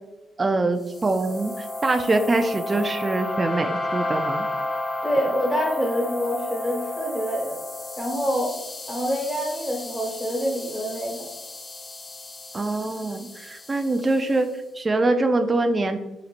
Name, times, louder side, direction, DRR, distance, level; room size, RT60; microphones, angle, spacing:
voice 1, 0.4-4.5 12.5-16.0, right 2 dB, 25° right, 6 dB, 0.3 m, -24 dB
sound 1, 0.9-14.3, left 2 dB, 30° left, 0.6 m, -32 dB
voice 2, 5.0-7.6 8.0-8.5 8.9-11.2 14.1-14.2, equal, 10° left, -2 dB, 1.4 m, -26 dB
4.2 x 4.0 x 2.5 m, 1.0 s
cardioid pair, 90°, 0 cm